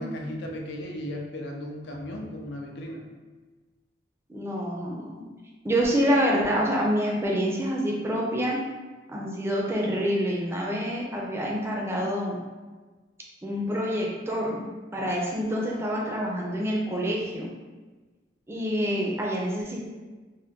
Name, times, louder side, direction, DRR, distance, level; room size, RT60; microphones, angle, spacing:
voice 1, 0.0-3.0, equal, 65° left, 1 dB, 0.5 m, -36 dB
voice 2, 4.3-5.2 5.6-8.6 9.1-12.4 13.4-17.5 18.5-19.8, equal, 15° right, -2 dB, 0.4 m, -27 dB
3.3 x 2.1 x 2.8 m, 1.3 s
head